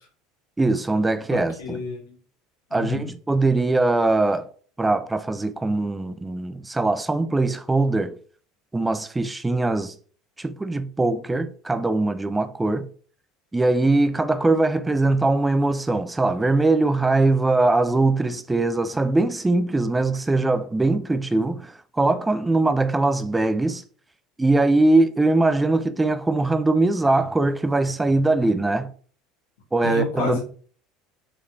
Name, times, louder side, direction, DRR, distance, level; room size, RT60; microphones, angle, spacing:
voice 1, 0.6-1.8 2.7-4.5 4.8-8.2 8.7-9.9 10.4-12.9 13.5-23.8 24.4-28.9 29.7-30.4, right 2 dB, 15° right, 0.4 m, -21 dB
voice 2, 1.3-2.2 2.7-3.1 29.8-30.4, left 3 dB, 75° left, 1.4 m, -29 dB
3.8 x 3.0 x 2.4 m
hypercardioid pair, 75°, 0 cm